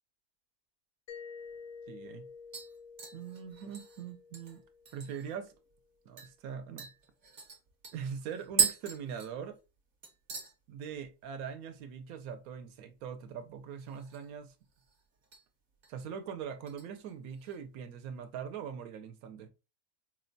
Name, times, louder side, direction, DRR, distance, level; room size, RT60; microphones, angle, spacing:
Mallet percussion, 1.1-5.7, left 5 dB, 65° left, 0.8 m, -50 dB
sound 1, 1.4-1.5 1.9-2.2 2.5-5.4 5.7-5.8 6.2-6.3 6.8-9.8 10.0-10.5 10.9-11.3 11.5-11.6 13.7-14.4 14.7-15.4 15.8-16.1 16.7-17.6 17.9-18.0, right 6 dB, 45° right, 0.8 m, -37 dB
voice 1, 1.9-2.2 3.1-4.6 4.9-5.5 6.1-6.9 7.9-9.6 10.7-14.5 15.9-19.5, right 7 dB, 75° right, 1.0 m, -42 dB
4.3 x 2.1 x 2.5 m
omnidirectional pair, 1.6 m